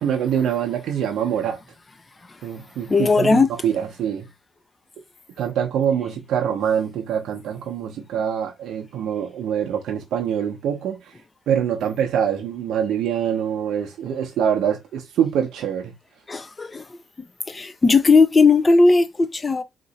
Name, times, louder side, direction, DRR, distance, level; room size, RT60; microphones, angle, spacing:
voice 1, 0.0-1.6 2.4-4.3 5.4-11.1 11.5-15.9, right 8 dB, 80° right, 0.7 m, -24 dB
voice 2, 2.9-3.5 16.3-16.8 17.5-19.6, left 4 dB, 25° left, 0.6 m, -17 dB
2.9 x 2.6 x 4.0 m
cardioid pair, 90°, 0 cm